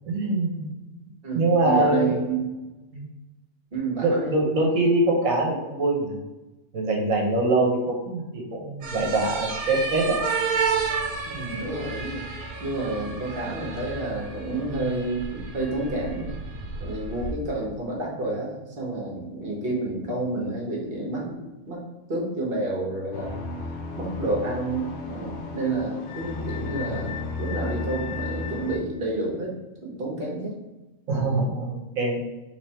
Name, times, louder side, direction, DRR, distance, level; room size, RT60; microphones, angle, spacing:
voice 1, 0.1-0.7 1.3-2.2 2.9-3.1 4.0-6.2 6.7-10.2 31.1-32.2, right 2 dB, 75° right, 0 dB, 1.3 m, -23 dB
voice 2, 1.2-2.4 3.7-4.4 11.3-12.3 12.6-16.3 16.8-21.4 21.7-21.8 22.1-23.4 24.0-29.5 29.8-30.6, right 2 dB, 45° right, -3 dB, 1.3 m, -29 dB
sound 1, 8.8-17.3, right 5 dB, 90° right, 1.2 m, -31 dB
sound 2, 23.1-28.8, left 4 dB, 85° left, 1.1 m, -33 dB
3.5 x 3.3 x 4.2 m, 1.1 s
omnidirectional pair, 1.5 m